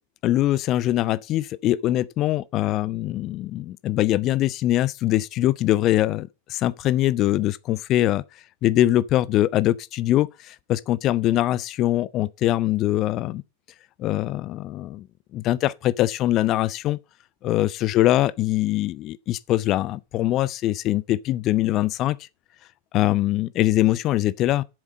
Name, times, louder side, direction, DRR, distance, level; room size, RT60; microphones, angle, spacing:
voice 1, 0.2-8.2 8.6-13.4 14.0-15.1 15.3-17.0 17.4-22.2 22.9-24.6, left 14 dB, 35° left, 0.5 m, -22 dB
7.9 x 7.1 x 5.2 m
figure-of-eight pair, 90°, 0 cm